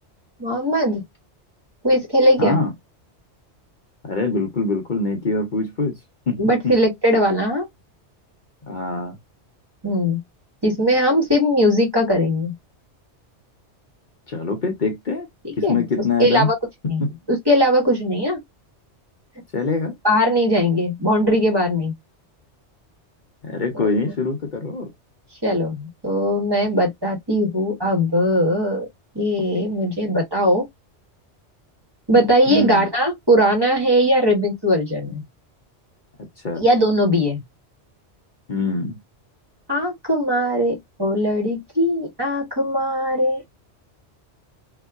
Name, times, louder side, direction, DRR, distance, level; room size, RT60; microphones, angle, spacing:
voice 1, 0.4-1.0 1.8-2.6 6.4-7.7 9.8-10.2 10.6-12.5 15.4-15.8 16.2-16.5 16.9-18.4 20.0-21.9 23.7-23.9 25.4-28.9 29.1-30.6 32.1-35.2 36.5-37.4 39.7-43.4, equal, 20° right, 1.5 m, -19 dB
voice 2, 2.4-2.7 4.0-6.0 6.3-6.7 8.7-9.2 14.3-15.3 15.6-16.5 17.0-17.1 19.5-19.9 23.4-24.9 32.5-32.9 36.4-36.6 38.5-39.0, left 3 dB, 45° left, 0.8 m, -24 dB
3.8 x 2.7 x 2.2 m
omnidirectional pair, 1.2 m